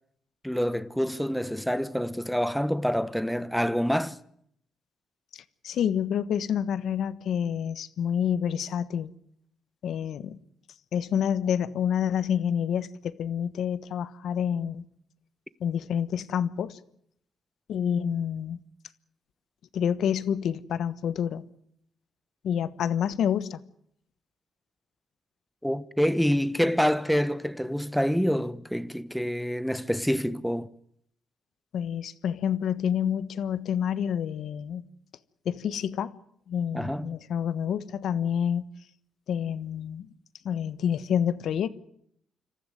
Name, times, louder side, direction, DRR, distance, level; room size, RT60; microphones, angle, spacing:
voice 1, 0.4-4.2 25.6-30.7 36.7-37.1, equal, ahead, 1.1 m, -27 dB
voice 2, 5.3-9.1 9.8-10.4 10.9-14.8 15.6-16.8 17.7-18.6 19.7-21.4 22.4-23.6 31.7-34.8 35.4-36.1 36.5-38.6 39.3-40.1 40.4-41.7, left 8 dB, 70° left, 1.3 m, -28 dB
27.0 x 14.5 x 9.3 m
cardioid pair, 90°, 0 cm